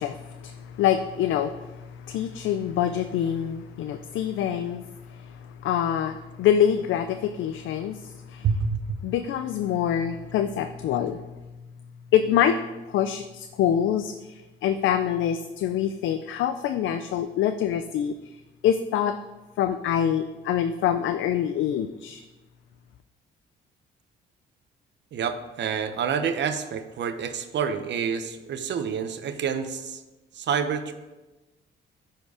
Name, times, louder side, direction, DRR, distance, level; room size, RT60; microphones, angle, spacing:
voice 1, 0.0-8.5 9.0-11.2 12.1-12.6 12.9-18.3 18.6-19.2 19.6-22.2, left 9 dB, 75° left, 9 dB, 0.5 m, -25 dB
voice 2, 8.4-8.8 25.1-30.0 30.3-30.9, right 6 dB, 65° right, 9 dB, 0.8 m, -28 dB
10.5 x 4.6 x 4.9 m, 1.1 s
cardioid pair, 90°, 20 cm